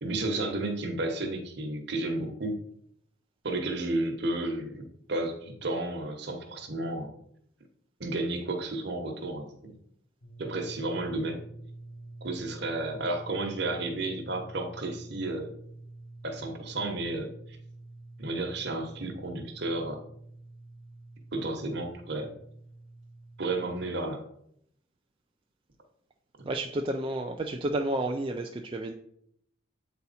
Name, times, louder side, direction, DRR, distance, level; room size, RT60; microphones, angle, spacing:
voice 1, 0.0-2.6 3.4-7.1 8.0-9.5 10.4-11.4 12.2-15.5 16.2-17.6 18.2-20.0 21.3-22.3 23.4-24.2, right 2 dB, 55° right, 4 dB, 1.2 m, -32 dB
sound 1, 10.2-23.8, right 2 dB, 70° left, 1.5 m, -47 dB
voice 2, 26.5-28.9, right 1 dB, 25° right, 3 dB, 0.3 m, -31 dB
8.0 x 4.1 x 4.2 m, 0.71 s
head